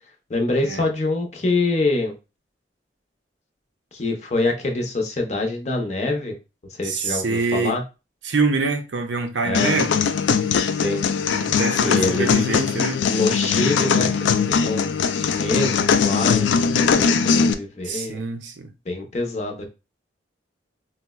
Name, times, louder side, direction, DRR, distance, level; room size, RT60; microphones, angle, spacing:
voice 1, 0.3-2.1 3.9-6.3 6.8-7.8 9.4-9.7 10.7-11.0 11.8-12.3 13.1-14.9 15.3-18.2 18.9-19.7, left 2 dB, 40° left, 0.6 m, -25 dB
voice 2, 6.8-7.8 8.2-9.9 11.3-13.0 17.8-18.7, right 4 dB, 85° right, 0.5 m, -25 dB
sound 1, 9.5-17.5, left 6 dB, 85° left, 0.3 m, -20 dB
4.1 x 2.0 x 2.2 m
head